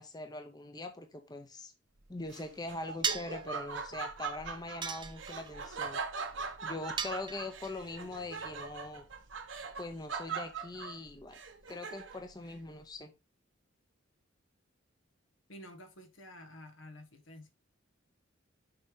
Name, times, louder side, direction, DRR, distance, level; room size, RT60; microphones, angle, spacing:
voice 1, 0.0-1.7 2.1-6.0 6.6-9.0 9.8-11.4 11.7-13.1, left 2 dB, 20° left, 0.7 m, -42 dB
Laughter, 2.3-12.3, right 5 dB, 70° right, 1.0 m, -41 dB
sound 1, 3.0-3.4 4.8-5.5 7.0-7.7, right 6 dB, 25° right, 0.6 m, -35 dB
voice 2, 15.5-17.5, left 1 dB, 85° left, 1.6 m, -50 dB
6.8 x 5.2 x 3.6 m
head